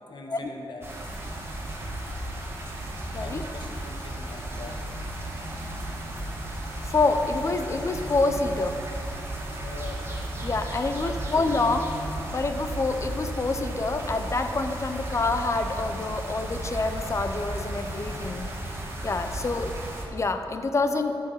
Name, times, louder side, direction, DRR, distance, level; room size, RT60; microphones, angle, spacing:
voice 1, 0.1-0.9 3.2-4.8 8.5-8.8 9.4-10.1 18.1-18.4, left 3 dB, 60° left, 2 dB, 1.2 m, -42 dB
sound 1, 0.8-20.0, right 1 dB, 30° right, 1.4 m, -34 dB
voice 2, 6.8-8.8 10.4-11.9 12.3-18.5 19.0-19.7 20.1-21.2, left 3 dB, 35° left, 7 dB, 0.6 m, -27 dB
13.5 x 6.3 x 5.6 m, 2.7 s
wide cardioid pair, 165°, 9 cm